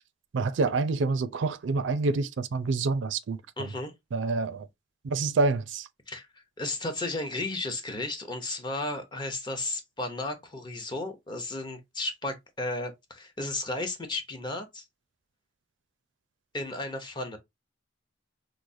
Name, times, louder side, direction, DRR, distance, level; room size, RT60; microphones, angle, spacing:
voice 1, 0.3-3.4 4.1-4.7 5.0-5.9, right 3 dB, 70° right, 0.4 m, -27 dB
voice 2, 3.6-3.9 6.1-14.8 16.5-17.4, left 2 dB, 25° left, 0.7 m, -34 dB
4.8 x 2.0 x 2.5 m
head